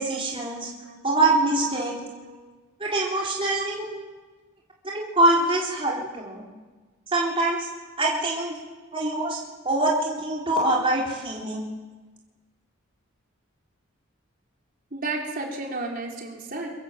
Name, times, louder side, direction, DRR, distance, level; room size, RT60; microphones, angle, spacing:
voice 1, 0.0-0.7 1.0-1.9 2.8-3.8 4.8-6.4 7.1-7.7 8.0-8.6 8.9-9.4 9.6-11.6, right 2 dB, 25° right, -4 dB, 3.8 m, -24 dB
voice 2, 3.6-4.1 14.9-16.7, right 2 dB, 45° right, 0 dB, 4.2 m, -33 dB
24.5 x 24.0 x 7.6 m, 1.3 s
head